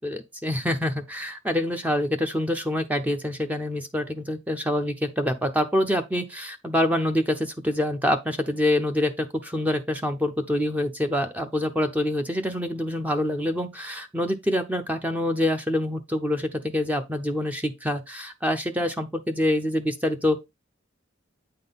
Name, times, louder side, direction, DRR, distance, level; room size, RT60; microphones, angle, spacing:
voice 1, 0.0-20.4, left 1 dB, 10° right, 0.6 m, -26 dB
8.6 x 3.8 x 3.9 m
head